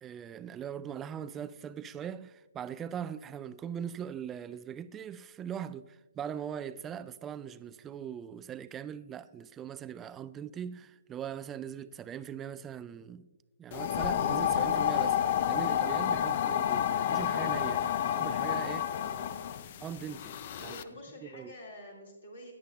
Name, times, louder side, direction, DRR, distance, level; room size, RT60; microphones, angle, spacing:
voice 1, 0.0-13.3 13.6-18.9 19.8-20.3 20.6-20.8 21.3-21.5, right 8 dB, 15° right, 0.3 m, -40 dB
sound 1, 13.7-20.8, left 9 dB, 40° left, 0.5 m, -30 dB
voice 2, 18.9-19.5 20.6-22.5, equal, 60° left, 2.5 m, -49 dB
16.5 x 9.9 x 2.5 m
figure-of-eight pair, 135°, 0 cm